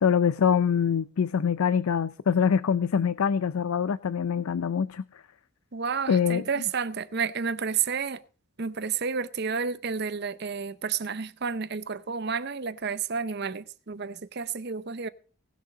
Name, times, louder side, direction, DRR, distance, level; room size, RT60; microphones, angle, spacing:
voice 1, 0.0-5.0 6.1-6.4, left 7 dB, 90° left, 0.5 m, -24 dB
voice 2, 5.7-8.2 8.6-15.1, right 6 dB, 50° right, 0.7 m, -31 dB
18.5 x 6.6 x 5.0 m
head